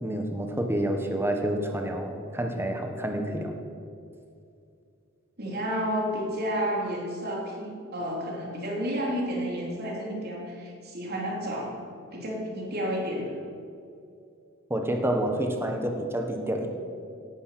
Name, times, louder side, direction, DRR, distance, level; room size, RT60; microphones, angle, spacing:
voice 1, 0.0-3.5 14.7-16.7, right 1 dB, 10° right, 4 dB, 1.4 m, -28 dB
voice 2, 5.4-11.7 12.1-13.4, equal, 50° right, -2 dB, 3.7 m, -31 dB
17.5 x 11.0 x 6.1 m, 2.5 s
head